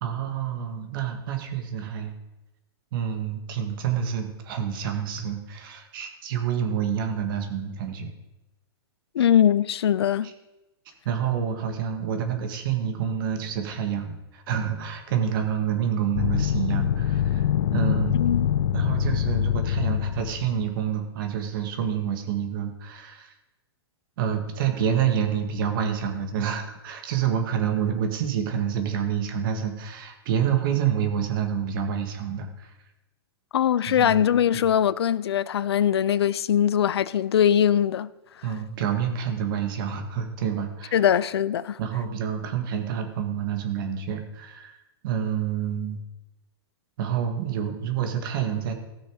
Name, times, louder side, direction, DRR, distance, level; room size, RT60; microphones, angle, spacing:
voice 1, 0.0-2.1 2.9-8.1 10.2-10.3 11.1-17.4 17.7-18.2 18.7-23.3 24.2-32.7 33.9-34.2 34.5-34.7 38.4-41.0 41.8-44.8 45.0-46.0 47.0-48.7, right 8 dB, 60° right, 1.8 m, -28 dB
voice 2, 9.1-10.3 18.1-18.5 33.5-38.1 40.9-41.8, left 9 dB, 85° left, 0.4 m, -21 dB
sound 1, 16.1-20.7, left 9 dB, 65° left, 0.8 m, -24 dB
15.0 x 6.4 x 5.0 m
hypercardioid pair, 125°, 13 cm